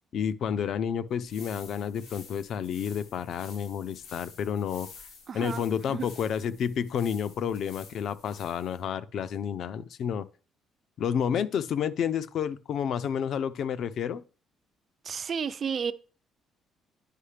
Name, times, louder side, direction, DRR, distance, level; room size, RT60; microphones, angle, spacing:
voice 1, 0.1-4.9 5.3-10.3 11.0-14.2, left 8 dB, 50° left, 0.4 m, -30 dB
sound 1, 1.1-8.8, left 5 dB, 90° left, 2.2 m, -51 dB
voice 2, 5.3-5.6 5.9-6.1 15.0-15.9, right 6 dB, 30° right, 0.3 m, -32 dB
9.8 x 5.4 x 3.3 m
cardioid pair, 180°, 0 cm